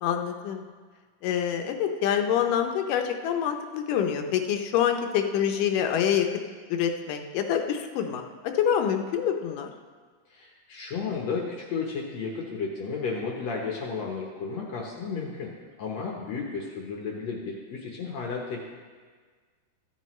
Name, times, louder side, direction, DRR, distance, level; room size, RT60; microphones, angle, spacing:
voice 1, 0.0-0.7 1.2-6.3 6.7-8.2 8.6-9.7, left 9 dB, 80° left, 5 dB, 2.3 m, -26 dB
voice 2, 10.3-15.5 15.8-18.7, left 5 dB, 65° left, -1 dB, 1.9 m, -33 dB
14.5 x 9.9 x 3.1 m, 1.5 s
omnidirectional pair, 3.8 m